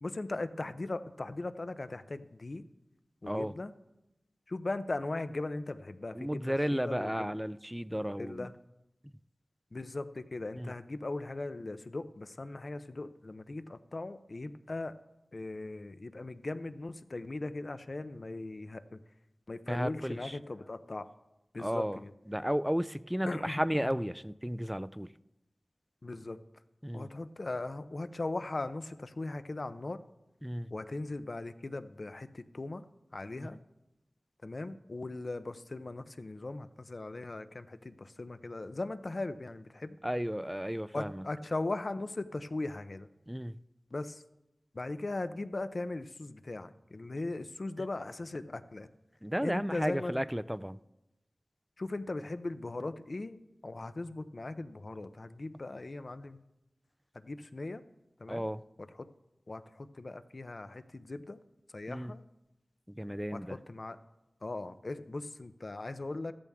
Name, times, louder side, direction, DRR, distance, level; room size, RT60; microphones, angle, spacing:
voice 1, 0.0-2.6 3.2-3.7 4.5-7.3 7.9-8.5 9.7-15.0 15.3-19.0 19.5-21.1 21.5-22.1 23.3-24.0 26.0-26.4 26.9-30.0 30.7-32.8 33.1-33.6 34.4-40.0 40.9-43.1 43.9-44.2 44.7-48.9 49.4-50.2 51.8-53.4 53.6-56.4 57.2-57.8 58.2-58.5 59.0-59.1 59.5-61.4 61.7-62.2 63.3-64.0 64.4-66.3, left 2 dB, 55° left, 0.7 m, -39 dB
voice 2, 6.1-8.5 10.6-10.7 19.7-20.4 21.6-22.0 22.3-25.1 26.8-27.1 30.4-30.7 33.4-33.5 40.0-41.3 43.3-43.6 49.2-50.8 58.3-58.6 61.9-62.1 62.9-63.6, equal, 5° right, 0.4 m, -33 dB
14.0 x 14.0 x 3.6 m
wide cardioid pair, 50°, 0 cm